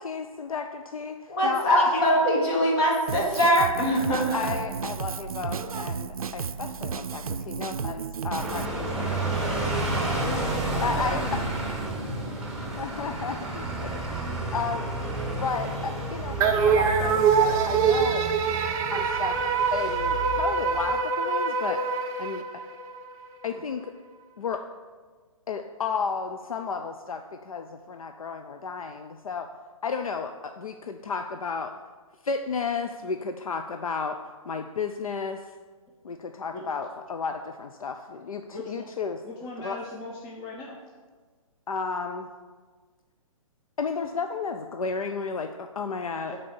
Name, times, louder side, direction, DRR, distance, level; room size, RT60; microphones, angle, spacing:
voice 1, 0.0-2.0 4.3-10.3 10.8-11.5 12.8-14.9 15.4-18.3 18.9-19.4 19.7-21.8 22.2-22.6 23.4-23.9 24.4-24.7 25.5-29.5 29.8-31.7 32.2-34.2 34.5-35.5 36.0-39.2 39.6-39.8 41.7-42.3 43.8-46.4, left 5 dB, 75° left, 6 dB, 0.5 m, -33 dB
voice 2, 1.3-4.4, equal, 45° left, -3 dB, 2.6 m, -22 dB
Drum kit, 3.1-8.7, right 6 dB, 80° right, 0.4 m, -33 dB
sound 1, 8.4-20.9, right 2 dB, 5° right, 1.4 m, -31 dB
voice 3, 9.9-11.5 36.5-36.7 38.5-38.9 39.2-40.8 46.3-46.4, left 2 dB, 25° left, -2 dB, 0.9 m, -38 dB
sound 2, 16.4-23.0, right 6 dB, 20° right, 0.5 m, -24 dB
8.4 x 4.1 x 6.8 m, 1.4 s
figure-of-eight pair, 130°, 18 cm